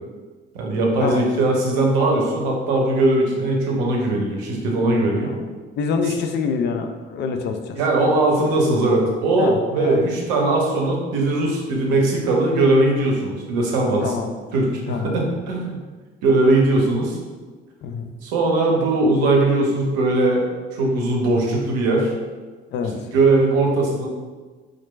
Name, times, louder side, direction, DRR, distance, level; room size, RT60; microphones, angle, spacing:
voice 1, 0.5-5.3 7.8-14.1 14.5-15.8 16.2-17.2 18.2-20.5 20.7-22.1 23.1-24.1, right 2 dB, 65° right, 0 dB, 0.7 m, -19 dB
voice 2, 5.8-7.8 9.4-10.0 14.0-14.3 14.9-15.2 17.8-18.1 22.7-23.0, left 5 dB, 35° left, 5 dB, 0.4 m, -26 dB
4.2 x 2.4 x 2.2 m, 1.4 s
figure-of-eight pair, 45°, 31 cm